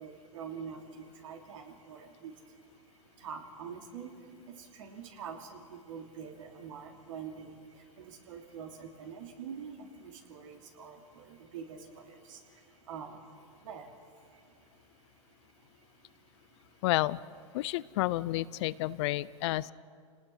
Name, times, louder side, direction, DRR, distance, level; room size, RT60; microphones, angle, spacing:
voice 1, 0.0-14.7 15.3-15.7 16.0-16.8, right 6 dB, 70° right, 3 dB, 2.9 m, -46 dB
voice 2, 16.8-17.2 17.5-19.7, left 17 dB, 55° left, 20 dB, 0.5 m, -30 dB
28.5 x 19.0 x 5.8 m, 2.2 s
hypercardioid pair, 115°, 17 cm